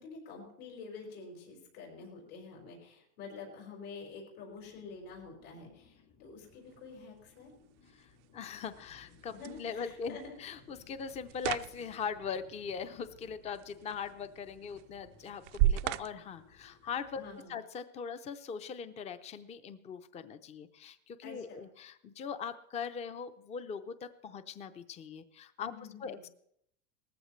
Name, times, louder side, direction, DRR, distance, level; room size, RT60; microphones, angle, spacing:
voice 1, 0.0-7.5 9.3-10.4 17.2-17.5 21.2-21.6 25.6-26.2, left 4 dB, 80° left, -1 dB, 5.5 m, -48 dB
sound 1, 4.5-17.4, left 6 dB, 55° left, 2.8 m, -62 dB
sound 2, 6.5-17.4, right 14 dB, 80° right, 0.5 m, -38 dB
voice 2, 7.9-17.2 17.5-25.7 26.0-26.3, left 6 dB, 20° left, 12 dB, 0.5 m, -41 dB
18.5 x 14.5 x 3.1 m, 0.72 s
supercardioid pair, 145°, 35 cm